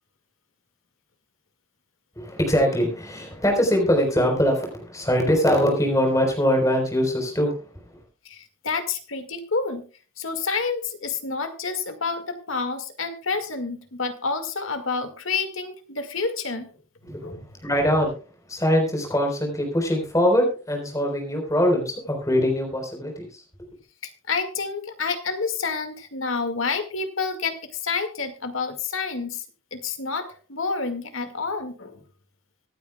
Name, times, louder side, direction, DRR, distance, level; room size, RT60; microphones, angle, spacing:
voice 1, 2.2-8.0 17.1-17.3 17.6-18.1 18.5-23.4, equal, 15° left, 2 dB, 4.1 m, -22 dB
voice 2, 8.3-9.8 10.2-16.7 17.0-17.4 24.0-29.4 29.7-32.0, left 4 dB, 80° left, 7 dB, 2.0 m, -29 dB
24.5 x 9.2 x 2.3 m, 0.34 s
head